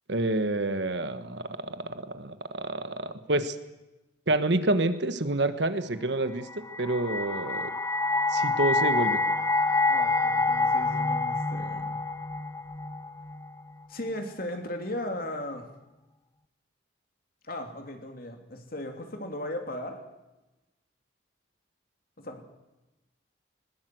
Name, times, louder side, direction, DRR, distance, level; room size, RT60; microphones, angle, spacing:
voice 1, 0.1-3.6 4.3-7.7 8.3-9.2, right 2 dB, 60° right, 10 dB, 1.4 m, -28 dB
sound 1, 6.5-13.6, left 3 dB, 15° left, 0.8 m, -27 dB
voice 2, 9.9-12.0 13.9-15.7 17.4-20.0 22.2-22.5, left 1 dB, 50° left, 4 dB, 3.0 m, -37 dB
20.5 x 20.0 x 7.9 m, 1.0 s
head